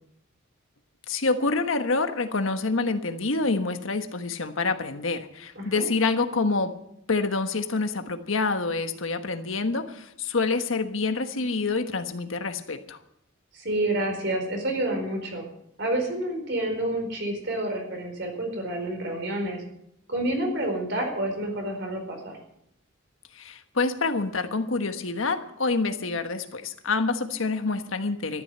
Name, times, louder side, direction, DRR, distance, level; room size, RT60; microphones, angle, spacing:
voice 1, 1.1-6.7 7.1-13.0 23.3-28.4, left 3 dB, 80° left, 8 dB, 1.4 m, -27 dB
voice 2, 13.5-15.4 15.8-19.6 20.1-22.3, right 1 dB, 60° right, 3 dB, 4.7 m, -29 dB
13.5 x 11.5 x 8.0 m, 0.76 s
head